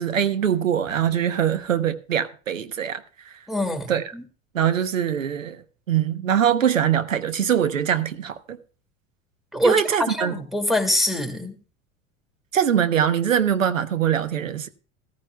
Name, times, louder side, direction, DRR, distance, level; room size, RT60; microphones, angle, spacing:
voice 1, 0.0-3.4 3.9-4.0 4.5-5.6 5.9-8.6 9.6-10.3 12.5-14.7, right 9 dB, 90° right, 1.0 m, -22 dB
voice 2, 3.5-4.2 9.5-11.6, left 1 dB, ahead, 2.2 m, -24 dB
15.0 x 14.5 x 2.3 m
hypercardioid pair, 80°, 38 cm